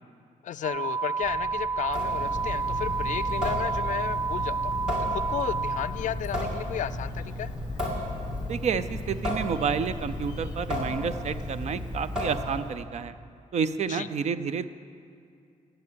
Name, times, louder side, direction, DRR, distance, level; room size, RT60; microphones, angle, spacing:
voice 1, 0.4-7.5 13.9-14.1, left 10 dB, 70° left, 16 dB, 0.4 m, -34 dB
sound 1, 0.6-5.8, right 5 dB, 40° right, 0.9 m, -30 dB
sound 2, 1.2-11.4, left 5 dB, 30° left, 1.1 m, -43 dB
Water tap faucet / Sink (filling or washing) / Drip, 1.9-12.8, left 1 dB, 5° right, 2.5 m, -34 dB
voice 2, 8.5-13.1 13.5-14.7, right 6 dB, 60° right, 13 dB, 0.5 m, -30 dB
17.0 x 7.7 x 6.9 m, 2.5 s
wide cardioid pair, 165°, 13 cm